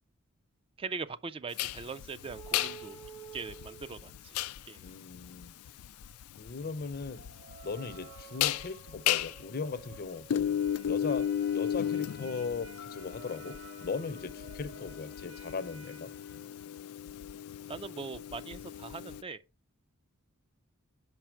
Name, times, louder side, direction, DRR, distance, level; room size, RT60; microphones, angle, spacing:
voice 1, 0.8-3.0 3.3-4.4 4.7-4.8 17.7-19.4, right 4 dB, 25° right, 0.3 m, -41 dB
sound 1, 1.6-19.2, left 10 dB, 90° left, 0.4 m, -35 dB
sound 2, 2.1-4.6 5.0-15.2, right 6 dB, 55° right, 1.1 m, -52 dB
voice 2, 4.8-5.6 6.4-7.2 7.6-10.5 10.9-11.3 11.5-16.1, left 4 dB, 45° left, 0.6 m, -38 dB
Trumpet, 10.4-16.8, equal, 85° right, 2.2 m, -56 dB
6.1 x 5.5 x 4.4 m
head